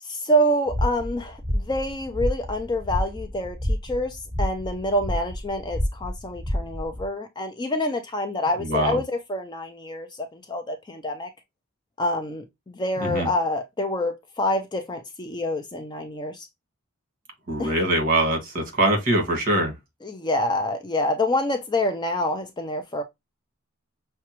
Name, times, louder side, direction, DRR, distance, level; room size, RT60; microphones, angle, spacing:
voice 1, 0.0-11.3 12.0-16.5 17.6-17.7 20.0-23.0, left 1 dB, 20° left, 0.4 m, -27 dB
sound 1, 0.7-7.1, equal, 10° right, 3.2 m, -29 dB
voice 2, 8.6-9.0 13.0-13.3 17.5-19.7, right 1 dB, 40° right, 1.6 m, -23 dB
5.8 x 2.2 x 2.9 m
head